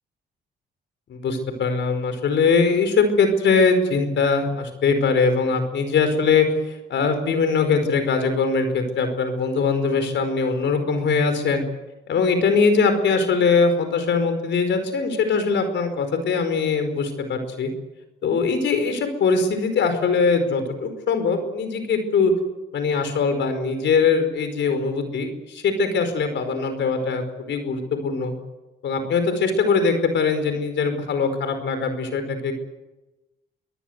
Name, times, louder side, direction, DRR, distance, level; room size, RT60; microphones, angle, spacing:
voice 1, 1.1-11.6 12.1-17.7 18.2-22.3 22.7-28.3 28.8-32.5, left 4 dB, 65° left, 8 dB, 4.9 m, -21 dB
24.0 x 19.0 x 8.1 m, 1.0 s
cardioid pair, 90°, 20 cm